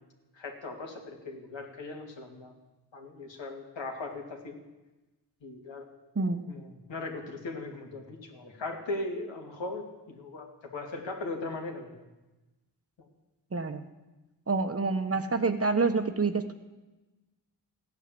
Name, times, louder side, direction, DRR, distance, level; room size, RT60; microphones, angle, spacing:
voice 1, 0.3-2.5 2.9-4.6 5.4-5.8 6.5-12.0 13.0-13.1 15.1-15.2, left 2 dB, 85° left, 1 dB, 2.7 m, -39 dB
voice 2, 13.5-13.9 14.5-16.5, right 4 dB, 35° right, 8 dB, 1.2 m, -27 dB
15.5 x 9.6 x 7.7 m, 1.1 s
wide cardioid pair, 80°, 44 cm